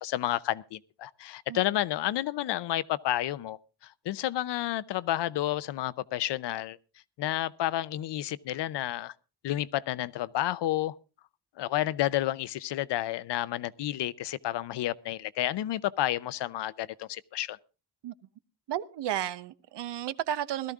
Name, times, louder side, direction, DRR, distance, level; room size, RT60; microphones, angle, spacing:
voice 1, 0.0-3.6 4.1-6.8 7.2-9.1 9.4-10.9 11.6-17.6, left 13 dB, 90° left, 0.7 m, -30 dB
voice 2, 18.7-20.7, right 11 dB, 90° right, 0.9 m, -33 dB
17.5 x 13.0 x 3.6 m
wide cardioid pair, 135°, 40 cm